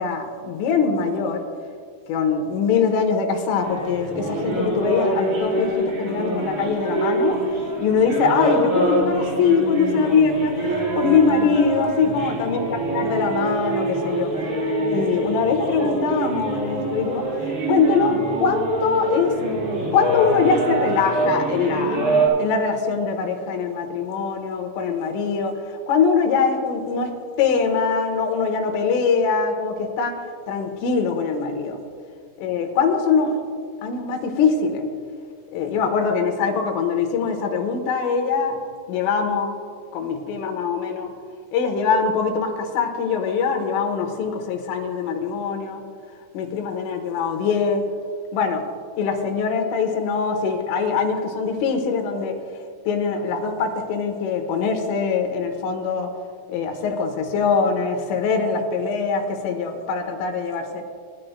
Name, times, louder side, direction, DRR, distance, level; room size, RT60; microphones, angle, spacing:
voice 1, 0.0-1.4 2.1-7.4 7.8-12.7 12.9-14.3 14.9-17.3 17.7-19.4 19.9-22.0 22.4-25.5 25.9-30.2 30.5-31.8 32.4-33.4 33.8-34.9 35.5-38.6 38.9-39.5 39.9-41.1 41.5-45.8 46.3-47.8 48.3-48.6 49.0-52.3 52.9-56.1 56.5-60.8, left 5 dB, 75° left, 3 dB, 3.7 m, -22 dB
sound 1, 3.6-22.3, right 2 dB, 30° right, 3.5 m, -25 dB
27.5 x 11.5 x 2.2 m, 2.2 s
omnidirectional pair, 6.0 m